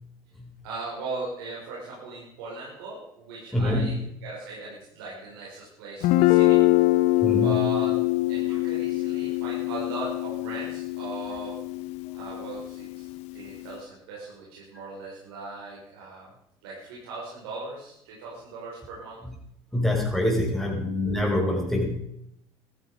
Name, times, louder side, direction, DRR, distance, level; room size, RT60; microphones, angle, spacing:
voice 1, 0.6-6.6 7.3-8.0 8.3-11.6 12.1-16.3 16.6-19.2, right 3 dB, 85° right, -5 dB, 5.6 m, -38 dB
voice 2, 3.5-3.9 7.2-7.6 19.7-22.0, left 1 dB, ahead, -1 dB, 5.7 m, -25 dB
Guitar, 6.0-13.7, left 18 dB, 65° left, 0.8 m, -24 dB
14.5 x 14.5 x 5.1 m, 0.80 s
supercardioid pair, 85°, 13 cm